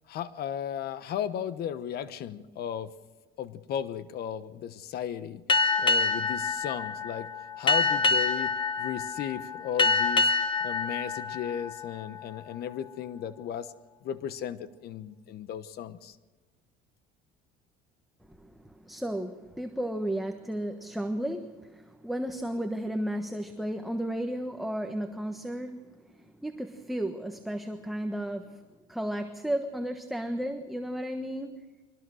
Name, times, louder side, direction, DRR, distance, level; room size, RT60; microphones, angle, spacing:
voice 1, 0.1-2.9 3.4-5.4 5.8-7.3 7.6-8.5 8.8-10.3 10.6-13.7 14.0-16.2, left 9 dB, 55° left, 13 dB, 1.1 m, -35 dB
Boat Water vehicle, 5.5-12.6, left 3 dB, 25° left, 1.7 m, -27 dB
voice 2, 18.2-28.6 28.9-31.6, right 1 dB, ahead, 5 dB, 1.3 m, -34 dB
23.5 x 17.5 x 6.3 m, 1.2 s
cardioid pair, 110°, 19 cm